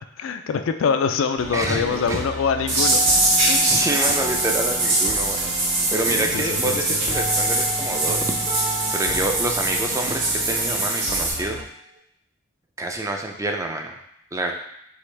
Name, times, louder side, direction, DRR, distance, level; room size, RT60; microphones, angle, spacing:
voice 1, 0.2-3.0 3.4-3.7 6.1-7.0, left 6 dB, 70° left, 8 dB, 0.4 m, -24 dB
sound 1, 1.4-11.6, right 2 dB, 75° right, 0.6 m, -35 dB
voice 2, 1.5-1.8 2.1-2.2 3.6-8.3 8.9-11.6 12.8-13.9 14.3-14.5, right 2 dB, 15° right, 3 dB, 0.3 m, -27 dB
sound 2, 1.9-11.9, left 1 dB, 35° right, 0.8 m, -36 dB
sound 3, 2.7-11.3, right 2 dB, 60° right, 1.5 m, -22 dB
4.8 x 3.0 x 3.2 m, 0.74 s
head